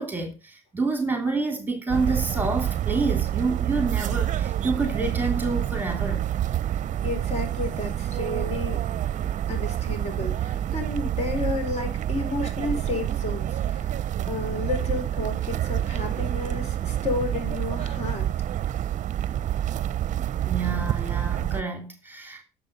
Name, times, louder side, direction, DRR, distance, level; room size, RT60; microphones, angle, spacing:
voice 1, 0.0-6.2 20.4-22.4, right 3 dB, 10° right, 3.0 m, -28 dB
sound 1, 1.9-21.6, right 11 dB, 40° right, 0.8 m, -27 dB
voice 2, 7.0-8.8 9.5-18.3, left 3 dB, 35° left, 4.7 m, -32 dB
11.0 x 7.4 x 5.3 m
supercardioid pair, 95°, 19 cm